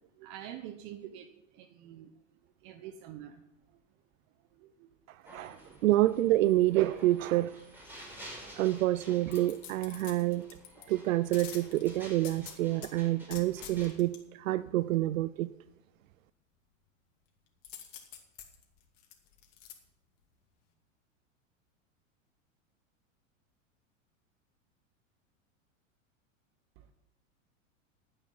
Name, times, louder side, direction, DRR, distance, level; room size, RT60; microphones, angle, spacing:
voice 1, 0.2-1.3 1.5-2.1 2.6-3.4 4.5-4.9 5.5-5.6 26.8-26.9, right 11 dB, 50° right, 9 dB, 1.1 m, -46 dB
voice 2, 5.1-7.6 8.5-10.4 10.9-15.5, right 16 dB, 75° right, 17 dB, 0.5 m, -28 dB
sound 1, 5.3-13.9, equal, 5° right, 5.8 m, -51 dB
sound 2, 9.3-10.9 11.3-12.9 13.3-14.2 17.6-19.7 20.2-20.3, left 10 dB, 65° left, 2.6 m, -47 dB
12.5 x 9.0 x 5.6 m, 0.90 s
hypercardioid pair, 105°, 40 cm